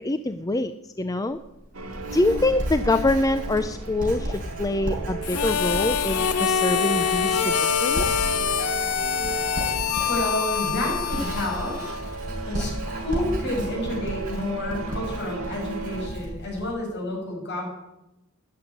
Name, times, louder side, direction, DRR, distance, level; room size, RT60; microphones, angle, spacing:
voice 1, 0.0-1.4 2.1-8.3, left 2 dB, 15° left, 11 dB, 0.5 m, -25 dB
Writing, 1.3-16.7, equal, 40° right, 5.8 m, -34 dB
sound 1, 1.7-16.1, right 3 dB, 80° right, 2.3 m, -35 dB
Harmonica, 5.2-12.2, left 8 dB, 90° left, 0.7 m, -25 dB
voice 2, 10.1-11.8 12.2-17.7, left 1 dB, 50° left, -1 dB, 6.5 m, -30 dB
13.5 x 10.5 x 9.9 m, 0.96 s
head